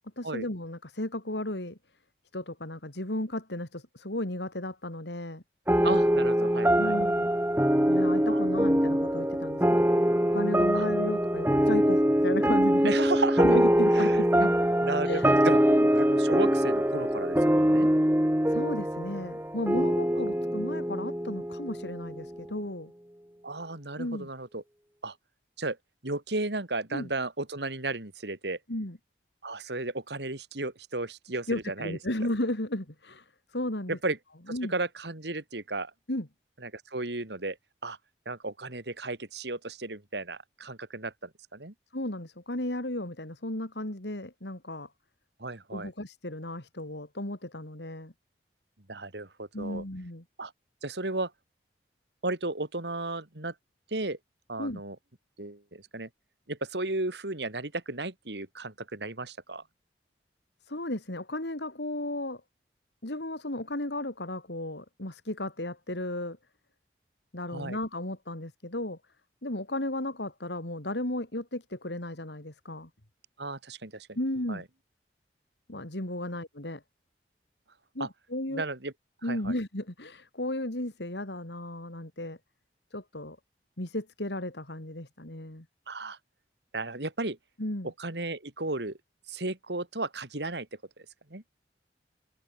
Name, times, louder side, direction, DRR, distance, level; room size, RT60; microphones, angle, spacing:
voice 1, 0.2-1.8 2.3-5.4 6.8-7.3 7.9-9.9 10.3-12.9 13.4-14.5 15.0-15.3 18.5-22.9 24.0-24.3 26.9-27.1 28.7-29.0 31.5-34.0 34.5-34.7 36.1-36.3 41.9-44.9 45.7-48.1 49.5-50.2 54.6-54.8 60.7-62.4 63.0-66.4 67.3-69.0 69.4-72.9 74.2-74.6 75.7-76.8 78.0-78.6 79.2-82.4 82.9-83.4 83.8-85.7 87.6-87.9, left 1 dB, 80° left, 3.5 m, -34 dB
sound 1, 5.7-22.5, equal, 10° right, 1.6 m, -24 dB
voice 2, 5.8-6.9 8.3-8.4 10.7-10.8 12.8-13.6 13.9-14.2 14.8-15.6 15.9-17.9 23.4-24.6 25.0-25.1 25.6-25.8 26.0-28.6 29.4-32.0 33.9-34.2 34.5-35.9 36.6-37.6 37.8-38.0 38.3-41.7 45.4-45.9 48.9-49.8 50.4-50.5 50.8-51.3 52.2-53.5 53.9-54.2 54.5-55.0 55.4-56.1 56.5-59.6 67.5-67.8 73.4-74.1 74.5-74.6 78.0-78.1 78.5-78.9 79.2-79.5 85.9-86.2 86.7-87.4 88.0-89.0 89.3-90.7 91.3-91.4, right 2 dB, 75° right, 2.8 m, -34 dB
head